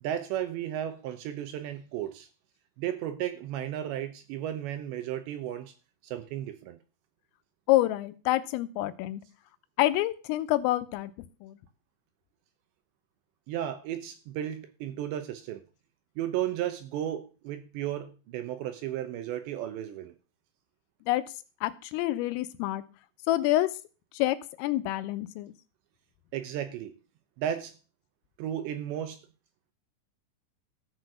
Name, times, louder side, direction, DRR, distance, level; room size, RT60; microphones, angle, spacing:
voice 1, 0.0-2.3 2.8-5.7 6.0-6.8 13.5-15.6 16.2-20.1 26.3-26.9 27.4-27.8 28.4-29.2, right 11 dB, 75° right, 2.8 m, -34 dB
voice 2, 7.7-9.2 9.8-11.1 11.4-11.6 21.1-21.2 21.6-22.8 23.3-23.8 24.1-25.5, left 15 dB, 90° left, 3.5 m, -27 dB
14.0 x 6.2 x 6.6 m
omnidirectional pair, 5.8 m